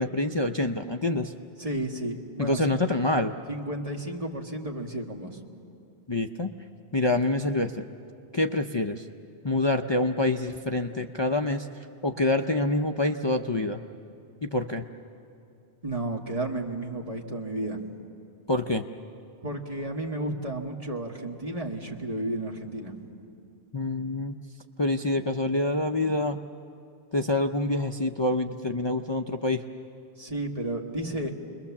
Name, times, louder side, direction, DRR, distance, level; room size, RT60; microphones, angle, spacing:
voice 1, 0.0-1.3 2.4-3.3 6.1-6.5 6.9-7.8 8.3-9.1 9.4-11.7 12.0-13.8 14.5-14.8 18.5-18.8 23.7-24.3 24.8-26.4 27.1-29.6, left 2 dB, 35° left, 4 dB, 0.5 m, -26 dB
voice 2, 1.6-2.7 3.5-5.4 15.8-17.8 19.4-23.0 30.2-31.3, right 1 dB, 30° right, 1 dB, 1.8 m, -32 dB
29.0 x 21.5 x 7.2 m, 2.6 s
omnidirectional pair, 1.2 m